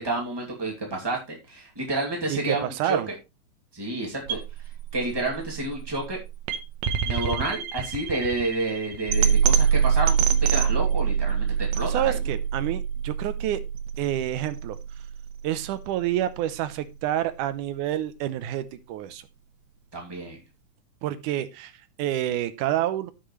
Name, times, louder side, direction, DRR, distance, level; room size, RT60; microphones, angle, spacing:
voice 1, 0.0-3.2 3.7-4.4 4.9-6.2 7.1-11.5 11.7-12.2 19.9-20.4, right 2 dB, 10° right, -1 dB, 2.2 m, -30 dB
voice 2, 2.3-3.1 11.8-13.6 14.0-14.8 15.4-19.2 21.0-21.7 22.0-23.1, right 12 dB, 90° right, 13 dB, 2.3 m, -28 dB
sound 1, 4.3-16.3, right 7 dB, 70° right, 2.0 m, -25 dB
13.5 x 6.3 x 3.1 m, 0.24 s
omnidirectional pair, 3.5 m